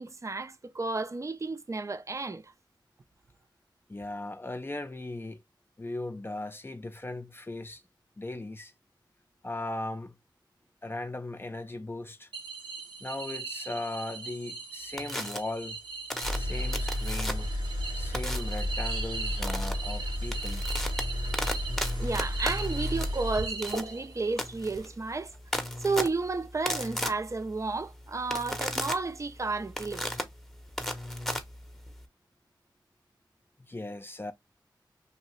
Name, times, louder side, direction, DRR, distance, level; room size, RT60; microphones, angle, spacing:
voice 1, 0.0-2.4 22.0-25.3 25.8-30.2, right 3 dB, 40° right, 0.4 m, -32 dB
voice 2, 3.9-5.4 5.8-7.8 8.2-8.7 9.4-10.2 10.8-12.3 13.0-15.8 16.2-17.5 17.9-20.6 33.7-34.3, left 2 dB, 25° left, 0.4 m, -38 dB
sound 1, 12.3-24.3, right 4 dB, 70° right, 1.0 m, -40 dB
sound 2, 15.0-15.4 16.1-17.6 18.1-18.6 19.4-19.7 20.2-32.1, equal, 5° left, 0.7 m, -35 dB
sound 3, 16.2-24.9, equal, 90° right, 1.4 m, -33 dB
2.8 x 2.5 x 3.0 m
cardioid pair, 45°, 8 cm